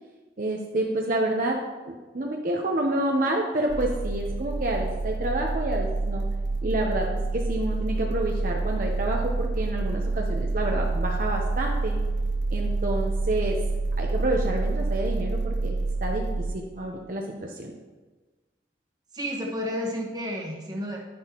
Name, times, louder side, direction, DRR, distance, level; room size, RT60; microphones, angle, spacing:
voice 1, 0.4-1.6 1.9-6.2 6.6-12.0 12.5-13.6 14.0-17.7, right 1 dB, 45° right, 0 dB, 0.8 m, -29 dB
sound 1, 3.7-16.5, right 3 dB, 85° right, 0.5 m, -27 dB
voice 2, 19.1-21.0, equal, 20° right, -1 dB, 1.3 m, -31 dB
10.0 x 9.5 x 3.0 m, 1.3 s
head